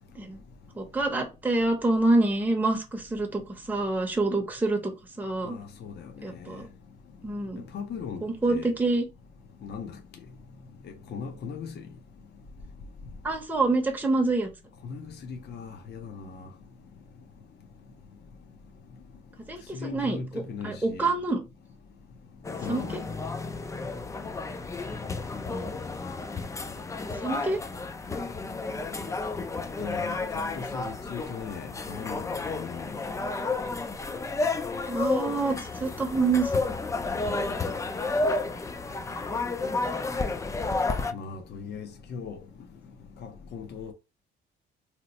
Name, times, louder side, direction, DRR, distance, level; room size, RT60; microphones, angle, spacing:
voice 1, 0.8-3.4 3.7-4.9 5.2-5.6 6.2-6.7 7.2-7.6 8.2-9.0 13.2-14.5 19.5-21.4 22.7-22.8 25.5-25.7 27.2-27.6 34.9-36.5 39.7-39.8, right 2 dB, 10° right, 0.7 m, -26 dB
voice 2, 5.4-6.1 6.4-6.6 7.6-8.2 8.5-8.7 9.6-9.9 10.8-11.8 14.8-15.0 15.3-16.5 19.7-21.1 22.6-23.0 29.8-33.0 41.1-42.4 43.2-43.9, left 5 dB, 55° left, 0.6 m, -38 dB
sound 1, 22.4-41.1, left 3 dB, 15° left, 0.3 m, -31 dB
2.8 x 2.0 x 4.1 m
cardioid pair, 90°, 20 cm